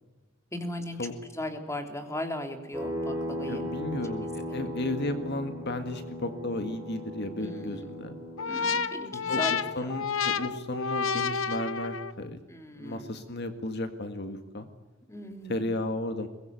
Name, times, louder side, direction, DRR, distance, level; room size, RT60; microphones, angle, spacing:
voice 1, 0.5-1.1 1.3-3.7 4.5-4.6 7.4-7.9 8.5-10.0 12.5-13.1 15.1-15.7, left 1 dB, 15° left, 6 dB, 3.1 m, -37 dB
sound 1, 2.7-8.5, left 1 dB, 15° right, 7.6 m, -37 dB
voice 2, 3.5-8.1 9.3-12.4 12.7-14.7 15.4-16.3, left 1 dB, 55° left, 8 dB, 1.9 m, -34 dB
sound 2, 8.4-12.3, left 5 dB, 75° left, 1.1 m, -30 dB
23.0 x 21.0 x 9.2 m, 1.2 s
head